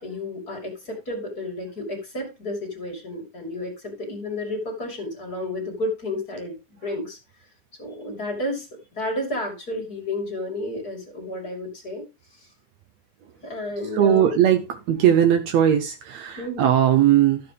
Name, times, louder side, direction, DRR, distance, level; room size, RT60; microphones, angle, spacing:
voice 1, 0.0-6.6 6.8-7.2 7.8-8.7 8.9-12.0 13.4-14.3 16.4-16.7, left 1 dB, 30° left, 2 dB, 3.0 m, -31 dB
voice 2, 14.0-14.6 14.9-17.4, right 10 dB, 70° right, 6 dB, 1.9 m, -18 dB
13.5 x 6.9 x 3.3 m, 0.26 s
omnidirectional pair, 3.5 m